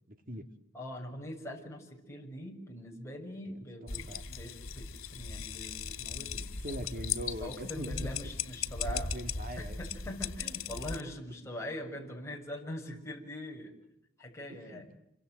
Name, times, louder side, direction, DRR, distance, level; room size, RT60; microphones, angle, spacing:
voice 1, 0.1-0.5 3.4-3.5 3.8-4.2 6.2-6.3 6.6-8.0 8.8-9.8 14.5-14.8, equal, 45° right, 7 dB, 2.4 m, -42 dB
voice 2, 0.7-4.9 5.1-6.8 7.4-9.2 9.6-13.7 14.2-14.9, left 1 dB, 15° left, 0 dB, 6.6 m, -43 dB
sound 1, 3.9-11.0, left 6 dB, 80° left, 2.5 m, -38 dB
28.0 x 25.5 x 8.0 m, 0.85 s
head